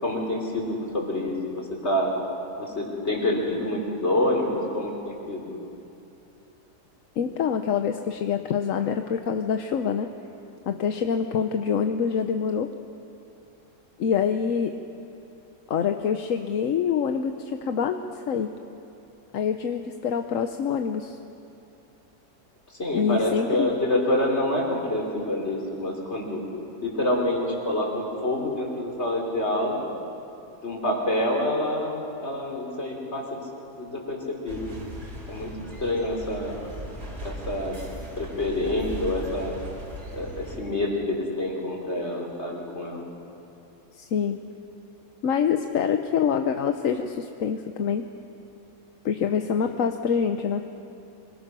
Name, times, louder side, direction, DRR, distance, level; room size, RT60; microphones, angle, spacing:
voice 1, 0.0-2.1 2.6-5.5 22.8-26.4 26.8-29.8 30.6-33.4 33.8-34.8 35.3-35.5 35.8-36.7 37.2-37.8 38.2-39.6 40.1-43.0 49.6-49.8, left 1 dB, 40° left, 0 dB, 4.0 m, -27 dB
voice 2, 7.2-10.1 10.7-12.7 14.0-14.8 15.7-18.5 19.3-21.2 22.9-23.7 44.0-44.4 45.2-48.1 49.0-50.6, left 7 dB, 60° left, 6 dB, 1.1 m, -26 dB
sound 1, 34.5-40.6, right 1 dB, 80° right, 4.5 m, -38 dB
26.0 x 21.5 x 6.2 m, 2.7 s
omnidirectional pair, 1.7 m